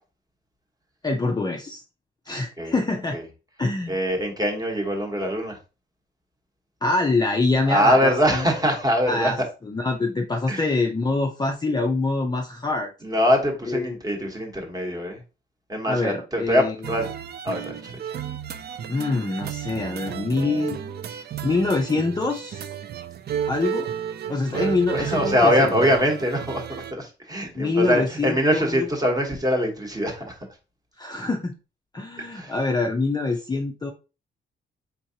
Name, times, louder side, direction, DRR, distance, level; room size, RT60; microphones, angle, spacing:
voice 1, 1.0-1.8 2.3-3.2 3.6-4.0 6.8-8.5 9.1-9.4 9.6-12.9 13.7-14.0 15.9-16.7 18.9-20.8 21.4-22.7 23.5-23.9 24.3-25.7 27.6-28.9 31.0-31.5 31.9-33.9, left 3 dB, 20° left, 1 dB, 0.5 m, -25 dB
voice 2, 3.9-5.6 7.7-9.3 10.5-10.7 13.0-15.2 15.7-17.1 17.4-17.9 24.5-30.4 32.2-32.5, equal, 20° right, 2 dB, 1.1 m, -23 dB
sound 1, 16.8-26.9, right 9 dB, 50° right, 0.4 m, -32 dB
4.4 x 3.6 x 2.7 m, 0.30 s
wide cardioid pair, 150°, 21 cm